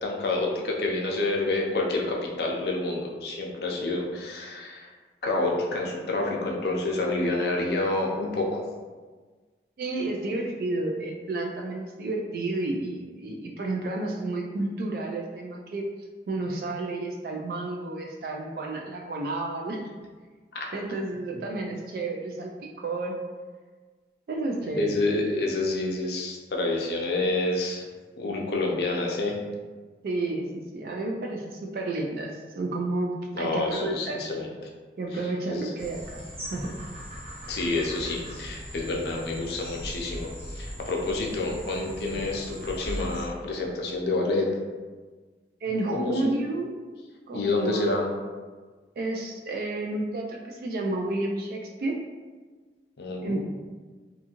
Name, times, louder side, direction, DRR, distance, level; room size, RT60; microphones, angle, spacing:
voice 1, 0.0-4.9 5.2-8.6 20.5-20.7 24.8-27.8 28.2-29.4 33.3-34.5 35.5-35.7 37.5-44.5 45.9-46.1 47.3-48.1 53.0-53.4, left 2 dB, 65° left, 0 dB, 0.5 m, -28 dB
voice 2, 9.8-15.9 16.3-19.9 20.7-23.2 24.3-24.9 30.0-34.2 35.0-36.2 36.5-36.8 45.6-46.7 47.3-47.9 49.0-52.0 53.2-53.4, right 2 dB, 55° right, 0 dB, 0.3 m, -31 dB
sound 1, 35.8-43.2, equal, 35° right, 0.9 m, -39 dB
2.6 x 2.4 x 2.8 m, 1.4 s
head